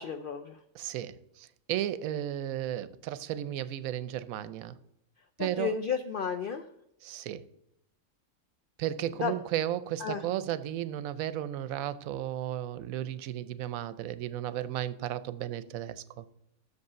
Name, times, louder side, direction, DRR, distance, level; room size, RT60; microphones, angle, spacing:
voice 1, 0.0-0.6 5.4-6.6 9.2-9.3 10.0-10.2, left 6 dB, 75° left, 0.5 m, -32 dB
voice 2, 0.7-4.8 5.4-5.7 7.0-7.5 8.8-16.2, right 12 dB, 85° right, 1.0 m, -34 dB
6.7 x 5.4 x 6.7 m
omnidirectional pair, 1.4 m